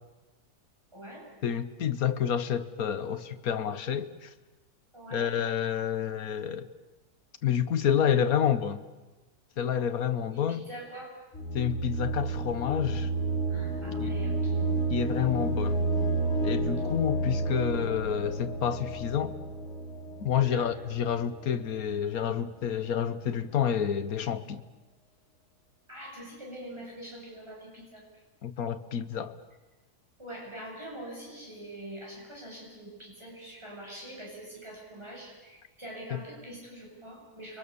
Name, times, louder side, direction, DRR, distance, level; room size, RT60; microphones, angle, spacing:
voice 1, 0.9-1.3 4.9-5.3 10.3-11.2 13.5-14.7 20.4-20.7 25.9-28.2 30.2-37.6, right 1 dB, 15° right, 8.2 m, -44 dB
voice 2, 1.4-4.3 5.1-6.7 7.4-8.8 9.6-10.6 11.5-13.1 14.0-14.1 14.9-15.8 16.4-19.4 20.2-24.6 28.4-29.4 36.1-36.2, left 8 dB, 65° left, 1.6 m, -29 dB
sound 1, 11.3-21.2, right 2 dB, 45° left, 4.2 m, -31 dB
30.0 x 23.5 x 7.0 m
omnidirectional pair, 1.7 m